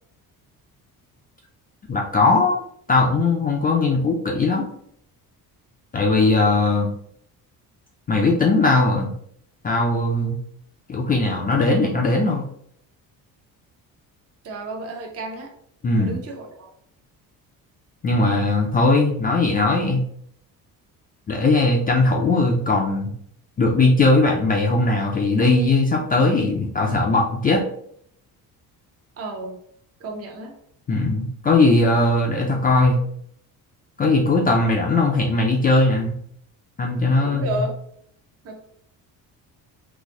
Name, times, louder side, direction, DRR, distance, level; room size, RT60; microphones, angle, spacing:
voice 1, 1.9-2.6 2.9-4.7 5.9-6.9 8.1-9.1 9.6-10.4 10.9-12.5 15.8-16.1 18.0-20.0 21.3-23.1 23.6-27.6 30.9-33.0 34.0-36.2 36.8-37.6, left 2 dB, 25° left, 0 dB, 0.4 m, -19 dB
voice 2, 14.4-15.5 16.0-16.7 29.2-29.6 30.0-30.6 37.2-37.7 38.4-38.6, right 2 dB, 40° right, 1 dB, 0.8 m, -31 dB
4.0 x 2.6 x 3.7 m, 0.66 s
cardioid pair, 175°, 36 cm